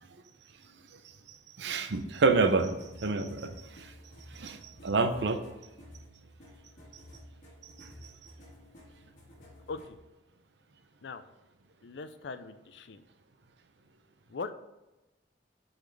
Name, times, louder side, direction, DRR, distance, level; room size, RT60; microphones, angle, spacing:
voice 1, 1.6-3.9 4.3-5.4 7.8-7.9, right 3 dB, 70° right, 8 dB, 0.6 m, -28 dB
sound 1, 1.9-10.0, left 1 dB, 45° left, 1.7 m, -52 dB
voice 2, 11.8-13.0 14.3-14.5, left 4 dB, 70° left, 11 dB, 0.5 m, -40 dB
8.1 x 4.1 x 3.3 m, 1.0 s
head